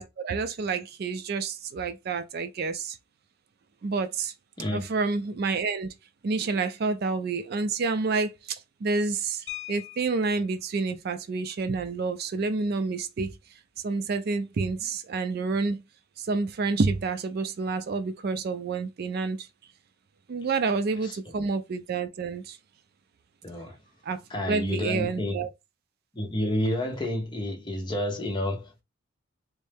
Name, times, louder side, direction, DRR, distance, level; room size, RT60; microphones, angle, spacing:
voice 1, 0.0-3.0 3.8-4.3 4.7-5.9 6.2-13.4 13.8-15.8 16.2-19.4 20.3-22.6 24.1-24.2 24.5-25.5, right 4 dB, 50° right, 0.4 m, -29 dB
sound 1, 9.5-10.5 12.0-12.1 12.5-12.6 13.0-13.3, left 17 dB, 60° left, 0.8 m, -41 dB
voice 2, 23.4-23.8 24.3-25.4 26.1-28.8, left 1 dB, 20° left, 0.9 m, -30 dB
3.2 x 2.6 x 3.4 m
head